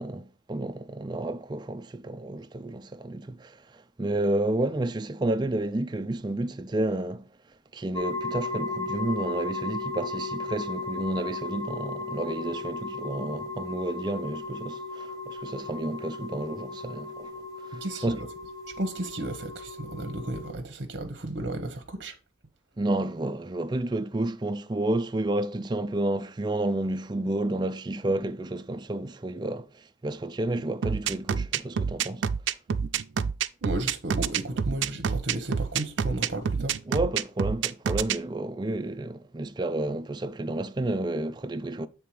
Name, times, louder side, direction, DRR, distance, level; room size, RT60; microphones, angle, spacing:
voice 1, 0.0-7.3 7.7-17.3 17.7-18.2 22.8-32.3 36.9-41.9, right 1 dB, 25° right, 0.4 m, -31 dB
sound 1, 7.9-20.5, left 3 dB, 20° left, 1.1 m, -36 dB
voice 2, 17.7-18.3 18.8-22.2 33.6-36.8, right 1 dB, 60° right, 0.9 m, -33 dB
sound 2, 30.8-38.2, right 7 dB, 85° right, 0.4 m, -27 dB
8.4 x 3.4 x 4.8 m
head